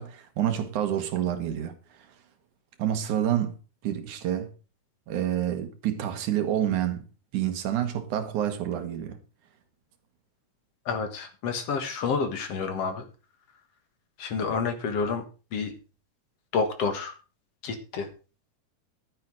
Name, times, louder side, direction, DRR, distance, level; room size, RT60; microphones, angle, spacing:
voice 1, 0.0-2.1 2.8-3.6 3.8-4.5 5.1-9.2, right 11 dB, 80° right, 2.9 m, -28 dB
voice 2, 10.9-13.1 14.2-15.2 15.5-15.7 16.5-17.1 17.6-18.1, left 5 dB, 60° left, 2.4 m, -29 dB
11.5 x 9.1 x 4.8 m
omnidirectional pair, 3.5 m